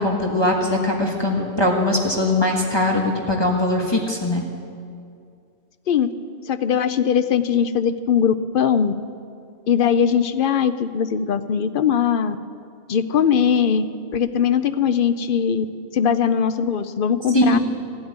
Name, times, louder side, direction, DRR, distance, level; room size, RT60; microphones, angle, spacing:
voice 1, 0.0-4.4 17.3-17.6, left 1 dB, 20° left, -1 dB, 1.4 m, -20 dB
voice 2, 6.5-8.9 9.7-12.4 12.9-13.8 14.1-15.7 15.9-17.6, left 7 dB, 55° left, 11 dB, 0.6 m, -20 dB
15.0 x 8.0 x 9.4 m, 2.4 s
omnidirectional pair, 1.3 m